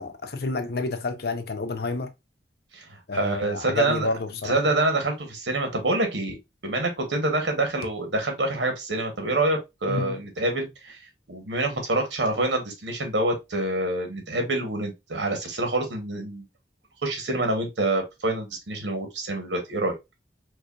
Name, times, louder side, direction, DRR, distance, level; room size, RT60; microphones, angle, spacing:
voice 1, 0.0-2.1 3.1-4.7 9.9-10.2, left 3 dB, 60° left, 0.6 m, -29 dB
voice 2, 2.7-4.1 4.4-6.4 6.6-11.0 11.3-16.4 17.0-19.9, right 2 dB, 85° right, 1.1 m, -26 dB
4.7 x 2.5 x 2.4 m
head